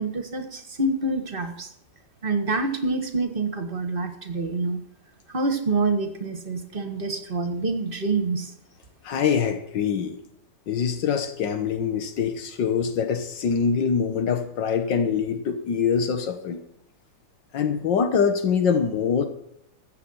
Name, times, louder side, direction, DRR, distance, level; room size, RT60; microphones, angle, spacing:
voice 1, 0.0-1.7 2.2-4.8 5.3-8.5, right 3 dB, 30° right, 8 dB, 1.6 m, -26 dB
voice 2, 9.0-10.2 10.7-16.6 17.5-19.3, left 6 dB, 85° left, 8 dB, 1.9 m, -24 dB
14.5 x 8.3 x 5.7 m, 0.74 s
omnidirectional pair, 1.9 m